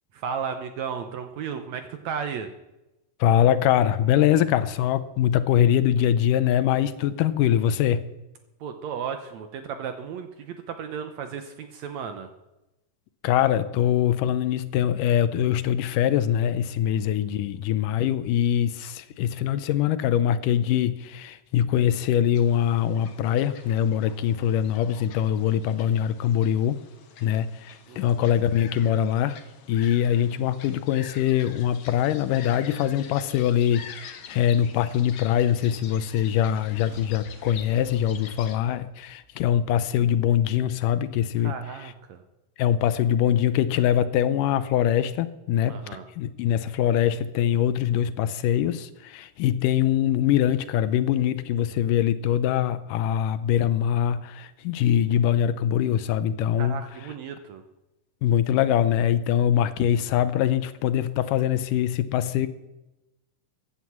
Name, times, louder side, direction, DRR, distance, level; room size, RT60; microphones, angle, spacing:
voice 1, 0.1-2.5 8.6-12.3 16.9-17.2 27.9-28.2 41.4-42.2 45.7-46.1 56.6-57.6, right 7 dB, 70° right, 1.8 m, -34 dB
voice 2, 3.2-8.0 13.2-26.8 27.2-29.4 29.7-41.5 41.8-41.9 42.6-45.8 46.2-56.8 58.2-62.5, left 10 dB, 80° left, 2.2 m, -23 dB
sound 1, 22.3-38.6, left 7 dB, 60° left, 1.8 m, -46 dB
sound 2, 35.1-40.4, right 1 dB, 5° right, 3.8 m, -54 dB
15.0 x 9.4 x 7.3 m
omnidirectional pair, 3.9 m